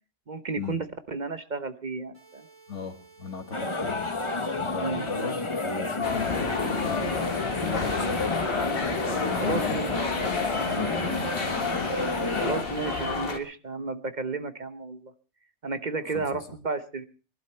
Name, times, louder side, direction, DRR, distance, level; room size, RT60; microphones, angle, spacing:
voice 1, 0.3-2.5 4.7-5.1 9.4-9.9 12.4-15.1 15.6-17.1, right 3 dB, 40° right, 10 dB, 1.0 m, -32 dB
sound 1, 2.1-7.1, right 4 dB, 60° right, 7.2 m, -54 dB
voice 2, 2.7-4.1 4.6-7.2 7.6-8.5 9.1-9.8 10.2-11.9 16.0-16.4, left 5 dB, 80° left, 6 dB, 2.1 m, -37 dB
sound 2, 3.5-12.6, left 3 dB, 25° left, 1.2 m, -30 dB
sound 3, 6.0-13.4, left 4 dB, 55° left, 1.7 m, -31 dB
21.5 x 12.0 x 4.4 m, 0.36 s
omnidirectional pair, 1.2 m